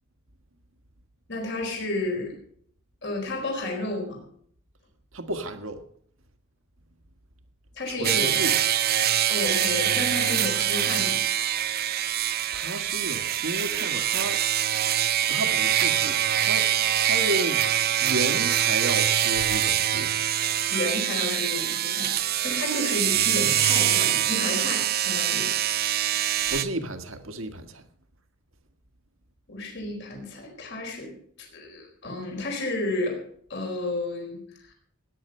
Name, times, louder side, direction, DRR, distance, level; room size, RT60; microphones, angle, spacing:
voice 1, 1.3-2.3 3.0-4.2 7.8-8.4 9.3-11.2 20.7-25.5 29.5-33.2 33.5-34.4, left 2 dB, 55° left, 1 dB, 4.4 m, -31 dB
voice 2, 5.1-5.8 7.9-8.5 12.5-14.5 15.3-16.7 17.0-17.6 18.0-20.3 26.5-27.8, right 1 dB, 65° right, 7 dB, 1.6 m, -32 dB
sound 1, 8.0-26.6, right 11 dB, 45° right, 0.6 m, -24 dB
17.5 x 9.9 x 5.4 m, 0.62 s
head